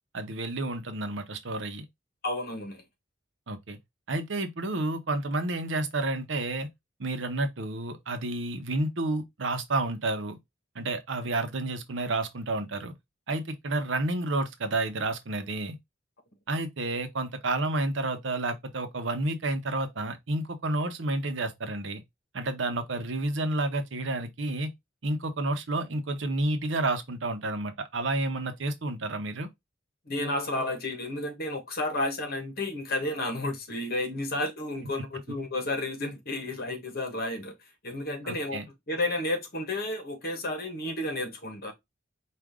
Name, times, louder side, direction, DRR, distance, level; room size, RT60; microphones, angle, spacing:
voice 1, 0.1-1.8 3.5-3.8 4.1-6.7 7.0-10.4 10.7-12.9 13.3-15.8 16.5-22.0 22.3-24.7 25.0-29.5 38.2-38.7, right 2 dB, 70° right, 0.8 m, -30 dB
voice 2, 2.2-2.8 30.1-37.6 37.8-38.6 38.9-41.7, left 1 dB, 50° left, 1.3 m, -32 dB
4.8 x 2.5 x 3.6 m
head